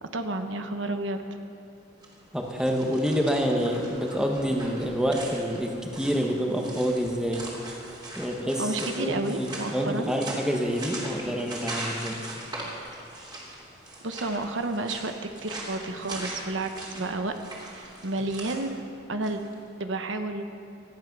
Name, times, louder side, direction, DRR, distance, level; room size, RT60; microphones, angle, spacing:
voice 1, 0.0-1.2 8.6-10.1 14.0-15.1 15.4-17.4 17.7-18.8 19.1-19.4 19.8-20.4, right 2 dB, 75° right, 7 dB, 1.1 m, -31 dB
sound 1, 1.9-19.5, right 1 dB, 20° right, 3.2 m, -40 dB
voice 2, 2.3-7.5 8.2-12.2, equal, 5° right, 1 dB, 1.3 m, -27 dB
17.5 x 13.5 x 6.1 m, 2.6 s
head